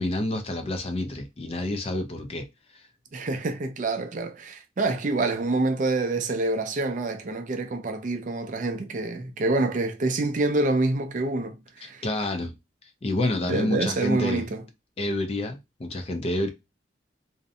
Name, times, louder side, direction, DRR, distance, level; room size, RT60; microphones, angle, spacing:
voice 1, 0.0-2.9 11.8-12.6 12.8-14.5 15.0-16.5, left 1 dB, 30° left, 0.4 m, -29 dB
voice 2, 3.1-12.0 13.4-14.6, right 2 dB, 45° right, 0.4 m, -27 dB
2.5 x 2.1 x 2.5 m
head